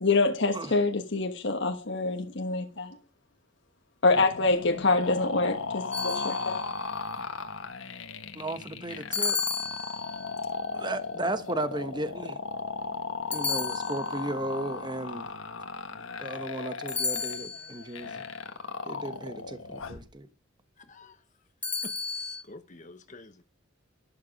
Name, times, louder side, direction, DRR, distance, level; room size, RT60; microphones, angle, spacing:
voice 1, 0.0-3.0 4.0-6.6, left 3 dB, 60° left, 1.3 m, -26 dB
sound 1, 4.1-20.1, left 4 dB, 75° left, 1.5 m, -36 dB
sound 2, 5.9-6.8 9.1-10.4 13.3-14.4 16.9-17.8 21.6-22.4, left 4 dB, 10° left, 1.1 m, -33 dB
voice 2, 8.3-9.4 9.8-9.9 10.7-12.4 13.3-15.3 16.2-18.2 18.8-20.3, right 1 dB, 20° right, 1.1 m, -35 dB
voice 3, 20.8-21.2 21.8-23.4, left 2 dB, 40° left, 1.0 m, -48 dB
12.0 x 11.5 x 5.2 m
head